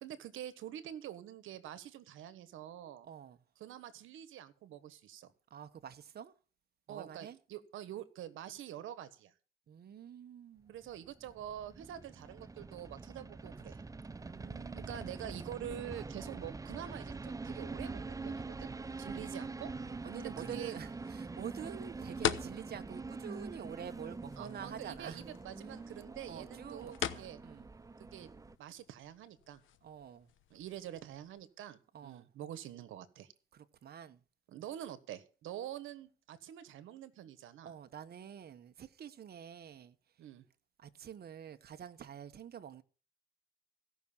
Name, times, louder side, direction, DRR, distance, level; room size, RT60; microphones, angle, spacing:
voice 1, 0.0-3.1 3.6-5.3 6.9-9.3 10.7-13.8 14.8-18.7 19.0-19.7 20.2-20.8 24.4-27.4 28.0-28.3 28.6-29.6 30.5-33.3 34.5-37.7 40.2-40.4, right 11 dB, 85° right, 1.4 m, -46 dB
voice 2, 3.0-3.4 5.5-6.3 6.9-7.4 9.7-10.7 14.1-15.2 19.0-19.3 19.8-25.2 26.3-27.7 29.8-30.3 31.9-32.3 33.5-34.2 37.6-40.0 40.8-42.8, right 8 dB, 50° right, 1.1 m, -48 dB
sound 1, 10.9-28.6, right 3 dB, 15° right, 0.6 m, -44 dB
sound 2, 18.8-31.4, left 10 dB, 80° left, 1.0 m, -45 dB
16.5 x 6.1 x 7.2 m
cardioid pair, 90°, 20 cm